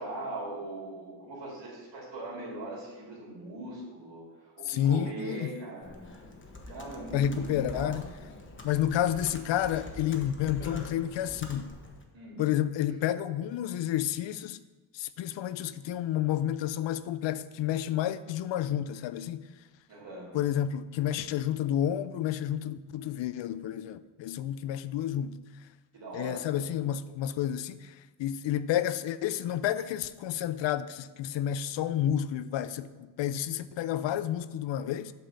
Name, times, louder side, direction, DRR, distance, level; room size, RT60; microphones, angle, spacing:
voice 1, 0.0-5.9 6.7-8.0 9.6-9.7 12.1-12.4 12.9-13.0 19.9-20.3 25.9-26.6, right 2 dB, 80° right, 2.6 m, -40 dB
voice 2, 4.7-5.5 7.1-8.1 8.6-11.7 12.4-14.6 14.9-19.5 20.3-25.4 26.1-27.9 28.2-35.1, left 11 dB, 80° left, 0.5 m, -30 dB
Computer keyboard, 5.8-12.0, left 2 dB, 25° left, 1.1 m, -44 dB
8.0 x 4.2 x 6.6 m
cardioid pair, 105°, 43 cm